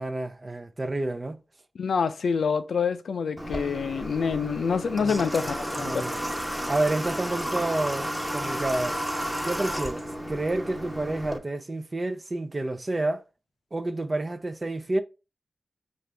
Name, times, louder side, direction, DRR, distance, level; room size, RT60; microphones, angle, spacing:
voice 1, 0.0-1.4 5.0-5.1 5.8-6.2 6.7-9.0 9.4-13.2 13.7-15.0, right 2 dB, 35° right, 0.5 m, -29 dB
voice 2, 1.8-6.2, left 6 dB, 80° left, 0.4 m, -27 dB
Water / Water tap faucet, 3.4-11.4, equal, 10° right, 1.1 m, -32 dB
5.3 x 2.5 x 3.3 m
cardioid pair, 45°, 0 cm